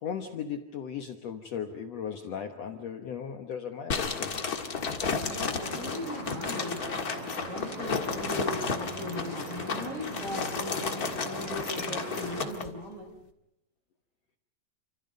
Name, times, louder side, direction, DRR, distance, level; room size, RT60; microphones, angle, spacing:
voice 1, 0.0-4.4, left 7 dB, 60° left, 5 dB, 2.1 m, -37 dB
sound 1, 3.9-12.7, left 5 dB, 35° left, 1.6 m, -33 dB
voice 2, 5.2-6.8 7.5-13.1, left 1 dB, 20° right, 3 dB, 4.9 m, -38 dB
sound 2, 5.6-12.5, right 2 dB, 80° right, 7.4 m, -41 dB
29.0 x 26.5 x 5.3 m, 0.82 s
omnidirectional pair, 3.9 m